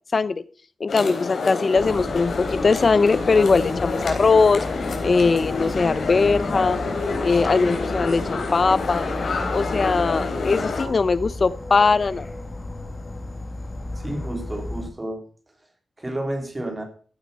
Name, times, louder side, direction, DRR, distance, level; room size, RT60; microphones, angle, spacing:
voice 1, 0.1-0.4 0.8-4.6 5.0-6.8 7.2-9.1 9.5-12.3, left 4 dB, 40° left, 16 dB, 0.7 m, -20 dB
sound 1, 0.9-10.8, left 3 dB, 70° left, 3.5 m, -28 dB
Insect / Frog, 1.7-14.9, left 2 dB, 25° left, 2.3 m, -34 dB
voice 2, 13.9-15.2 16.0-16.8, right 1 dB, 20° right, 4 dB, 3.3 m, -30 dB
15.5 x 8.5 x 5.5 m, 0.42 s
wide cardioid pair, 155°, 0 cm